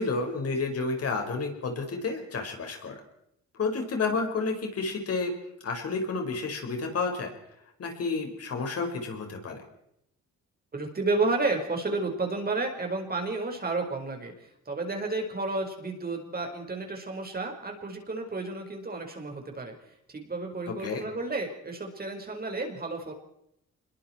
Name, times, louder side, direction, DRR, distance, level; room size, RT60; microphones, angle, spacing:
voice 1, 0.0-2.9 3.6-5.3 5.6-7.3 7.8-9.6 20.7-21.0, left 4 dB, 55° left, 3 dB, 5.3 m, -30 dB
voice 2, 10.7-19.7 20.1-23.1, right 3 dB, 30° right, 3 dB, 4.9 m, -31 dB
26.0 x 22.0 x 4.5 m, 0.77 s
cardioid pair, 90°, 30 cm